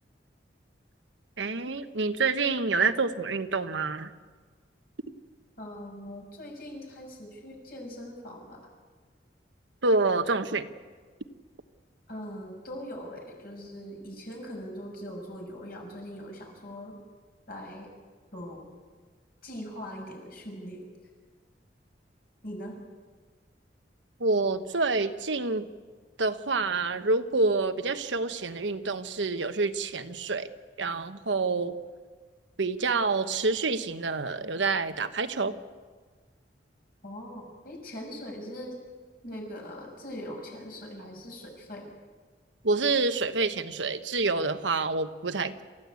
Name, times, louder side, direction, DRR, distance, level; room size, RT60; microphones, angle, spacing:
voice 1, 1.4-4.1 9.8-10.7 24.2-25.6 26.2-30.5 30.8-31.8 32.6-35.6 42.6-45.6, right 3 dB, 90° right, 9 dB, 1.2 m, -27 dB
voice 2, 5.6-8.7 12.1-17.0 17.5-17.9 18.3-18.7 19.4-20.9 22.4-22.8 37.0-38.8 39.2-41.8, equal, 55° left, 0 dB, 6.6 m, -41 dB
28.0 x 15.0 x 8.4 m, 1.5 s
head